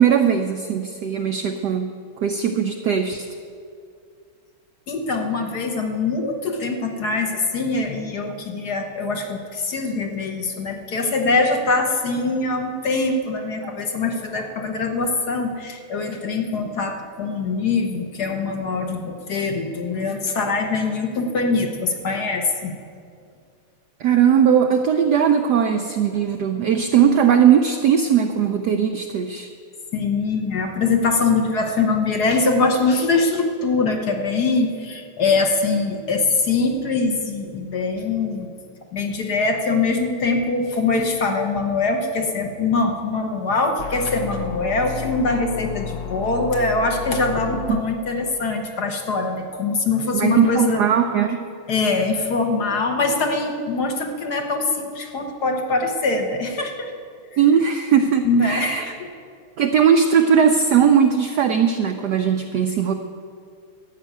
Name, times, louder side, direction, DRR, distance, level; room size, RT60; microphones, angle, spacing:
voice 1, 0.0-1.9 2.2-3.2 24.0-29.5 47.7-47.8 50.1-51.5 57.4-58.8 59.6-62.9, right 7 dB, 75° right, 6 dB, 0.9 m, -18 dB
voice 2, 4.9-22.8 29.9-38.5 38.9-50.8 51.7-56.9 58.2-59.1, left 3 dB, 55° left, 3 dB, 1.4 m, -23 dB
sound 1, 43.8-47.8, left 8 dB, 70° left, 1.2 m, -32 dB
13.0 x 6.6 x 9.1 m, 2.3 s
omnidirectional pair, 2.4 m